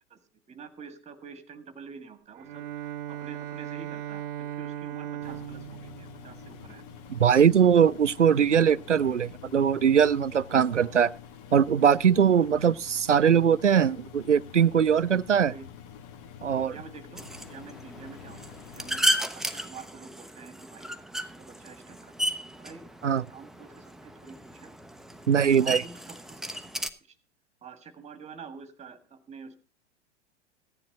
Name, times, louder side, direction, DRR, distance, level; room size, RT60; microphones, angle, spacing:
voice 1, 0.5-4.3 4.6-6.9 10.7-11.0 12.4-12.7 15.4-15.7 16.6-18.4 18.7-20.9 21.3-22.2 22.6-22.9 23.3-24.8 25.6-26.4 26.7-27.2 27.6-29.5, right 5 dB, 20° right, 1.8 m, -47 dB
Bowed string instrument, 2.4-7.3, right 12 dB, 50° right, 0.6 m, -38 dB
Engine, 5.2-19.0, left 8 dB, 40° left, 1.6 m, -47 dB
voice 2, 7.1-11.1 11.5-15.5 16.4-16.8 23.0-23.2 25.3-25.8, right 8 dB, 90° right, 0.5 m, -21 dB
sound 1, 17.2-26.9, right 1 dB, ahead, 0.6 m, -34 dB
15.5 x 9.8 x 4.0 m
figure-of-eight pair, 95°, 35 cm